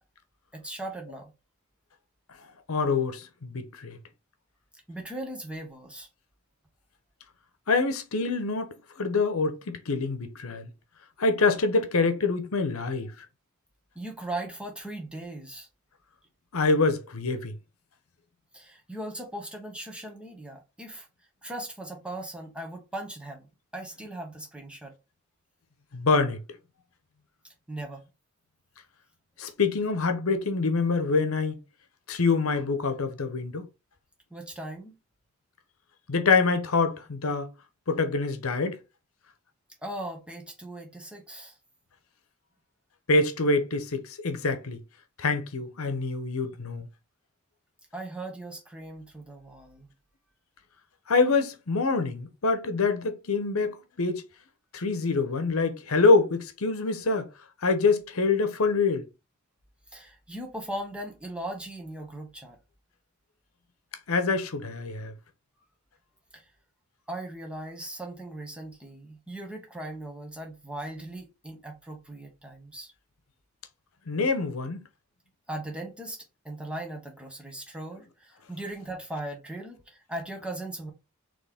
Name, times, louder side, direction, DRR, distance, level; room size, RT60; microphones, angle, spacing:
voice 1, 0.5-1.3 4.9-6.1 13.9-15.7 18.5-21.1 21.4-24.9 27.7-28.0 34.3-35.0 39.8-41.6 47.9-49.9 55.0-55.1 59.9-62.6 66.3-66.5 67.1-72.9 75.5-80.9, right 1 dB, 5° right, 1.1 m, -38 dB
voice 2, 2.7-4.0 7.7-10.7 11.2-13.1 16.5-17.5 25.9-26.4 29.4-31.6 32.1-33.7 36.1-37.5 37.9-38.8 43.1-44.8 45.2-46.9 51.1-54.2 54.7-57.3 57.6-59.0 64.1-65.1 74.1-74.8, left 4 dB, 80° left, 0.9 m, -25 dB
4.3 x 3.1 x 3.6 m
head